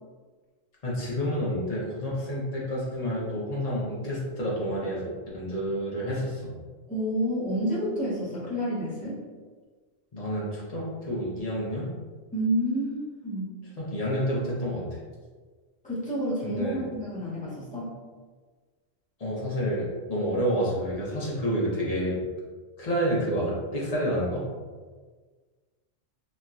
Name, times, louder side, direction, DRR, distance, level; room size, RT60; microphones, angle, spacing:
voice 1, 0.8-6.5 10.1-11.9 13.8-14.8 16.4-16.8 19.2-22.2 22.8-24.4, equal, 40° left, -5 dB, 0.7 m, -29 dB
voice 2, 6.9-9.2 12.3-13.5 15.8-17.9, equal, 10° left, -9 dB, 0.8 m, -29 dB
3.1 x 2.6 x 2.3 m, 1.4 s
omnidirectional pair, 1.2 m